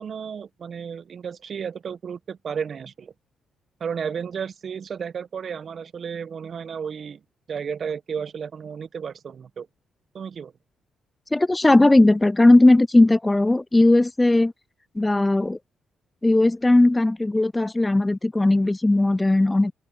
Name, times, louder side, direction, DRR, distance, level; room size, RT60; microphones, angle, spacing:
voice 1, 0.0-3.1 3.8-7.2 7.5-9.7 10.1-10.5, right 7 dB, 55° right, 1.1 m, -33 dB
voice 2, 11.3-14.5 15.0-15.6 16.2-19.7, left 2 dB, 20° left, 0.3 m, -17 dB
hypercardioid pair, 50°, 0 cm